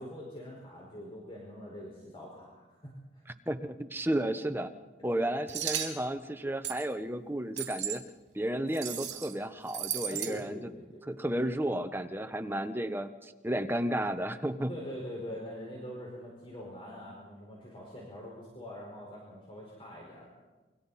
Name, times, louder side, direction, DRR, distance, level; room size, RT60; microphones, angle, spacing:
voice 1, 0.0-3.2 5.1-5.3 10.1-11.3 14.7-20.3, equal, 30° left, -3 dB, 5.1 m, -44 dB
voice 2, 3.5-4.7 5.0-8.0 8.3-10.6 11.1-14.7, right 1 dB, 10° right, 8 dB, 1.0 m, -32 dB
sound 1, 5.5-5.9 6.6-6.8 7.6-8.0 8.7-9.3 9.7-10.3, right 10 dB, 70° right, 3.1 m, -35 dB
27.5 x 24.0 x 4.3 m, 1.2 s
head